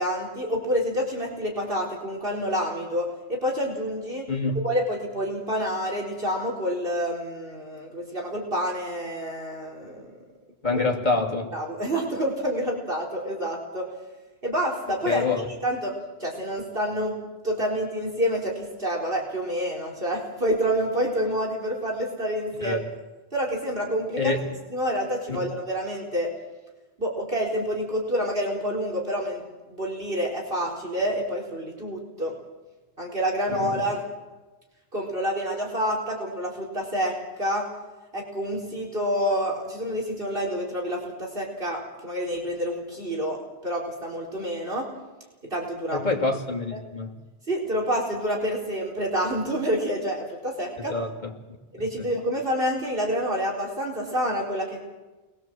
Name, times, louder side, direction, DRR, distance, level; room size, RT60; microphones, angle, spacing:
voice 1, 0.0-4.3 4.6-10.2 10.7-10.8 11.5-13.9 14.4-17.2 17.4-22.8 23.3-24.3 24.7-26.3 27.0-29.4 29.7-32.3 33.0-34.0 34.9-37.7 38.1-44.9 45.5-46.0 46.7-46.8 47.5-51.0 51.7-54.8, equal, 60° right, 4.5 m, -28 dB
voice 2, 4.3-4.6 10.6-11.5 15.0-15.4 22.6-22.8 24.2-24.4 25.3-25.5 33.5-33.8 45.9-47.2 50.9-51.3 51.8-52.1, left 3 dB, 45° left, 3.0 m, -27 dB
29.5 x 21.0 x 7.8 m
omnidirectional pair, 1.1 m